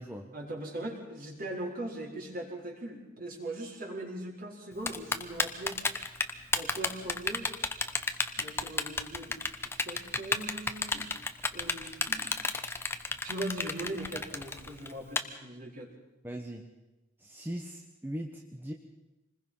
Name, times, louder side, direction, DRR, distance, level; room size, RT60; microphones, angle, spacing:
voice 1, 0.3-5.8 6.5-7.5 8.4-9.4 9.7-11.1 11.5-12.4 13.2-15.9, right 1 dB, 45° right, -1 dB, 4.6 m, -40 dB
Typing, 4.9-15.2, left 3 dB, 10° left, 0.9 m, -31 dB
voice 2, 16.2-16.6 17.2-18.7, equal, 10° right, 1 dB, 1.2 m, -39 dB
26.5 x 20.5 x 5.6 m, 1.0 s
head